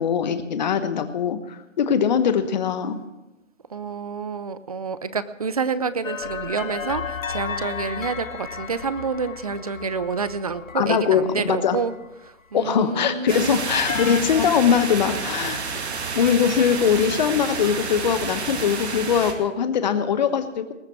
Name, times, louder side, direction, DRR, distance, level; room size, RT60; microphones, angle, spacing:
voice 1, 0.0-3.0 10.7-11.8 12.5-15.6 16.1-20.7, left 7 dB, 35° left, 10 dB, 1.2 m, -21 dB
voice 2, 3.7-11.9 12.2-13.6, right 5 dB, 30° right, 15 dB, 0.5 m, -28 dB
sound 1, 6.0-12.3 13.7-14.2, left 6 dB, 85° left, 1.0 m, -33 dB
sound 2, 13.3-19.3, right 5 dB, 55° right, 2.3 m, -30 dB
20.0 x 7.3 x 7.4 m, 0.99 s
hypercardioid pair, 150°, 38 cm